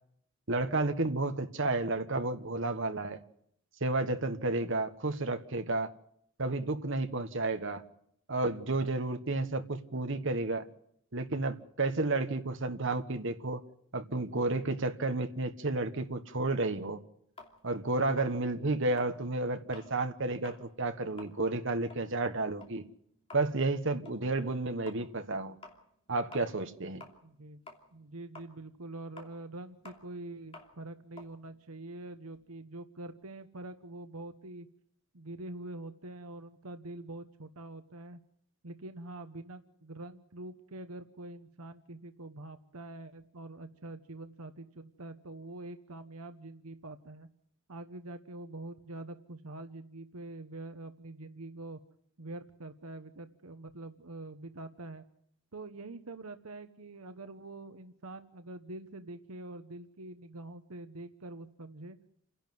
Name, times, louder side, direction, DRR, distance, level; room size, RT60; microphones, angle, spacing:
voice 1, 0.5-3.2 3.8-5.9 6.4-7.8 8.3-10.7 11.1-13.6 13.9-17.0 17.6-22.8 23.3-25.6 26.1-27.0, right 2 dB, 60° right, 1.4 m, -31 dB
sound 1, 17.4-20.0 20.3-20.7 21.0-27.4 27.7-32.4, left 3 dB, 25° left, 2.9 m, -53 dB
voice 2, 27.2-27.6 27.9-34.7 35.1-38.2 38.6-47.3 47.7-51.8 52.2-55.0 55.5-62.0, right 2 dB, 80° right, 1.1 m, -45 dB
29.0 x 11.5 x 9.4 m
head